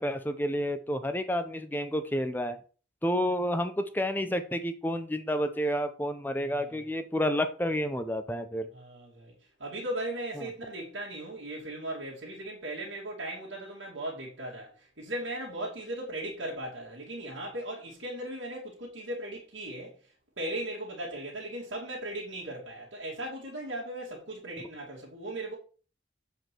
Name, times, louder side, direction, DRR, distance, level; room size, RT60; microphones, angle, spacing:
voice 1, 0.0-2.6 3.0-8.7, equal, 10° left, 0.6 m, -30 dB
voice 2, 6.3-6.9 8.7-9.3 9.6-20.0 20.4-25.6, right 1 dB, 80° right, 2.5 m, -38 dB
7.9 x 5.2 x 4.5 m
head